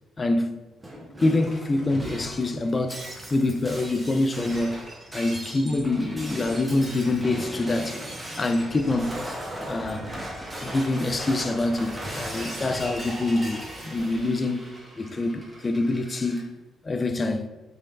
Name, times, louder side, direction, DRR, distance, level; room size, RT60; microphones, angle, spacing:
voice 1, 0.2-0.6 1.2-3.0 3.3-4.8 5.1-8.0 8.4-9.1 9.7-10.1 10.6-14.6 15.0-16.4 16.8-17.5, left 2 dB, 30° left, 0.3 m, -25 dB
Shatter, 0.8-16.4, right 1 dB, 15° right, 0.8 m, -38 dB
3.9 x 3.1 x 2.4 m
hypercardioid pair, 45°, 0 cm